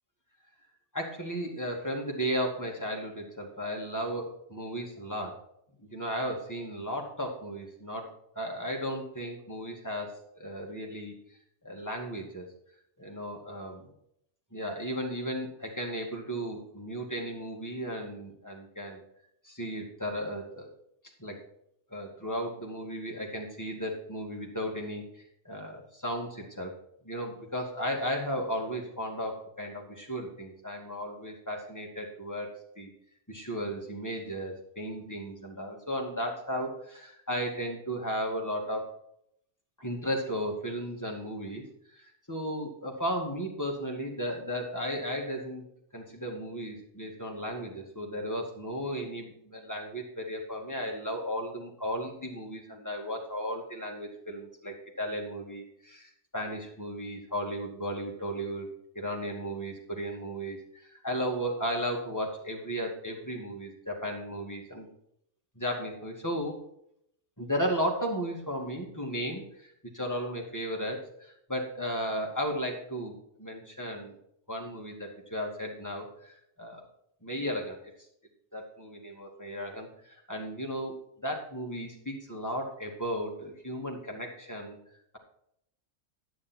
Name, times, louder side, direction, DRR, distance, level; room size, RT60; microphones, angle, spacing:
voice 1, 0.9-5.4 5.8-11.1 11.6-12.5 13.0-13.7 14.5-19.0 19.4-20.7 21.2-21.4 21.9-26.7 27.0-32.5 32.8-32.9 33.3-38.9 39.8-41.6 41.9-45.6 45.9-58.7 58.9-64.9 65.6-66.6 67.4-74.2 74.5-76.9 77.2-77.8 78.5-84.8, equal, 15° left, -1 dB, 2.3 m, -35 dB
10.5 x 9.5 x 4.5 m, 0.73 s
omnidirectional pair, 1.3 m